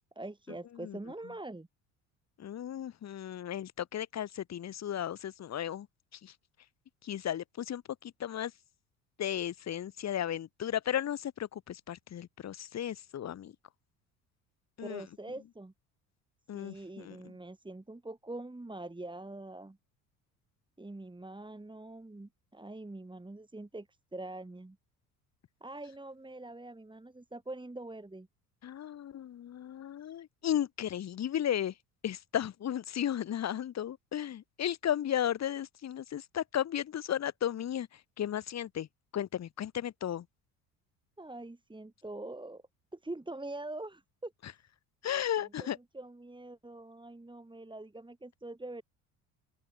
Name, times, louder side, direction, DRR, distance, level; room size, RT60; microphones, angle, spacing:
voice 1, 0.2-1.7 14.8-15.7 16.5-19.8 20.8-24.8 25.6-28.3 41.2-42.6 42.9-44.3 45.1-48.8, right 2 dB, 10° right, 4.2 m, -44 dB
voice 2, 2.4-5.9 6.2-6.3 7.0-8.5 9.2-13.5 14.8-15.0 16.5-17.3 28.6-31.7 32.0-37.9 38.2-38.9 39.1-40.2 45.0-45.8, left 10 dB, 40° left, 1.4 m, -34 dB
open air
hypercardioid pair, 60°, 43 cm